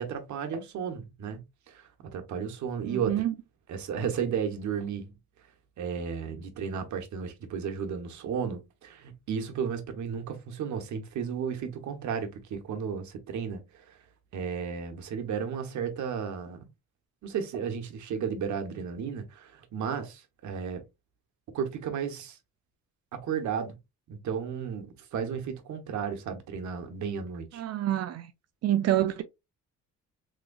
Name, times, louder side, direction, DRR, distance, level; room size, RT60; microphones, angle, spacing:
voice 1, 0.0-3.1 3.7-5.1 5.8-14.0 14.3-16.6 17.2-20.8 21.5-22.4 23.1-23.8 24.1-27.6, right 7 dB, 70° right, 1.0 m, -34 dB
voice 2, 2.8-3.3 27.5-28.3 28.6-29.2, right 12 dB, 55° right, 0.5 m, -27 dB
3.6 x 3.0 x 2.3 m
cardioid pair, 90°, 30 cm